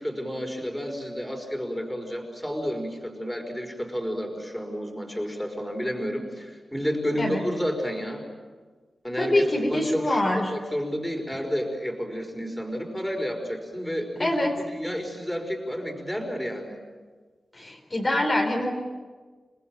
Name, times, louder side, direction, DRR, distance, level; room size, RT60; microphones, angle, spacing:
voice 1, 0.0-8.2 9.0-16.8, equal, 5° left, 3 dB, 5.2 m, -31 dB
voice 2, 9.2-10.4 14.2-14.5 17.5-18.7, left 1 dB, 35° left, 0 dB, 4.1 m, -24 dB
28.5 x 20.5 x 8.9 m, 1.4 s
wide cardioid pair, 105°, 0 cm